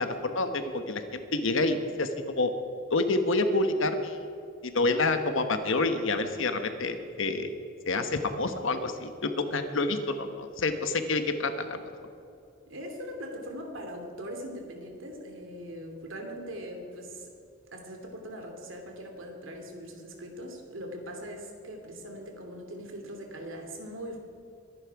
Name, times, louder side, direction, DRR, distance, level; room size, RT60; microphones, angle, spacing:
voice 1, 0.0-2.5 2.9-4.2 4.6-7.5 7.9-11.8, left 2 dB, 70° left, 8 dB, 1.3 m, -28 dB
voice 2, 12.6-17.3 17.7-24.2, equal, 70° right, 3 dB, 2.7 m, -41 dB
23.0 x 11.0 x 4.8 m, 2.6 s
head